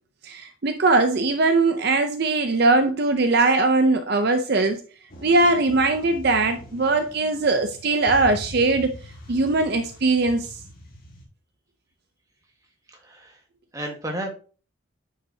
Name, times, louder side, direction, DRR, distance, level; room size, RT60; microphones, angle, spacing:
voice 1, 0.2-4.8 5.2-8.9 9.3-10.5, right 3 dB, 50° right, 7 dB, 0.6 m, -20 dB
sound 1, 5.1-11.3, equal, 45° left, 1.9 m, -42 dB
voice 2, 12.9-13.4 13.7-14.3, right 1 dB, 15° right, 2 dB, 1.4 m, -32 dB
9.4 x 5.6 x 2.8 m, 0.37 s
head